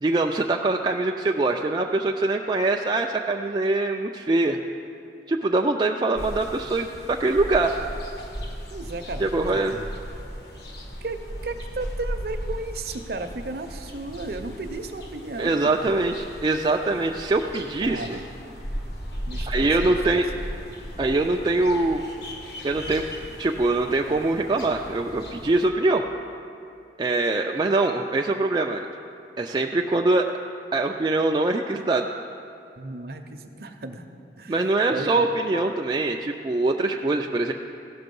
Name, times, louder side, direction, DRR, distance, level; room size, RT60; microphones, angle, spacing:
voice 1, 0.0-4.6 5.3-7.7 9.2-9.7 15.4-18.2 19.5-20.3 21.0-22.0 22.6-23.1 23.4-26.0 27.0-28.9 29.4-30.3 30.7-32.1 34.5-37.5, right 2 dB, 25° right, 1 dB, 0.3 m, -23 dB
sound 1, 6.2-25.7, equal, 65° left, 1.3 m, -37 dB
voice 2, 8.7-9.2 9.5-9.9 11.0-15.5 15.8-16.1 16.9-17.0 17.8-18.1 19.3-20.2 32.8-34.1 34.4-35.3, right 2 dB, 55° right, 7 dB, 0.7 m, -35 dB
16.0 x 6.0 x 5.3 m, 2.5 s
head